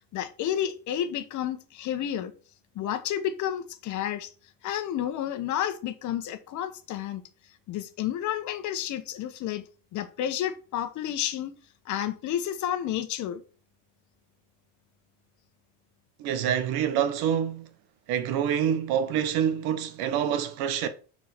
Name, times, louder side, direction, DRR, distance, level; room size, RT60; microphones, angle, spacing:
voice 1, 0.1-2.3 2.7-4.3 4.6-7.2 7.7-9.6 9.9-11.5 11.8-13.4, left 10 dB, 40° left, 1.2 m, -31 dB
voice 2, 16.2-17.7 18.1-20.9, right 9 dB, 55° right, 1.3 m, -26 dB
6.2 x 4.7 x 6.1 m
supercardioid pair, 135°, 43 cm